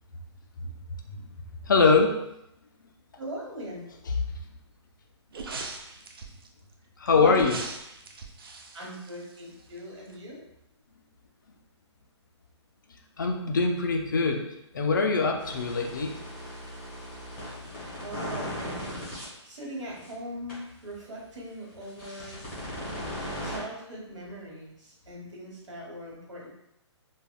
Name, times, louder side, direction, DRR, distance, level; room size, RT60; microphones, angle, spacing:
voice 1, 1.6-2.1 7.0-7.6 13.2-14.4 14.7-16.2, left 4 dB, 45° left, 3 dB, 0.4 m, -23 dB
voice 2, 3.2-3.8 7.0-7.5 8.7-10.4 18.0-19.0 19.4-22.4 23.4-26.5, equal, 85° right, -3 dB, 1.2 m, -40 dB
sound 1, 5.3-6.5 7.3-9.8 10.1-10.2, right 3 dB, 50° right, 0.4 m, -40 dB
sound 2, 15.4-19.2 19.9-20.0 20.5-20.6 21.8-23.6, equal, 10° left, 0.6 m, -38 dB
3.4 x 2.1 x 2.2 m, 0.82 s
hypercardioid pair, 170°, 15 cm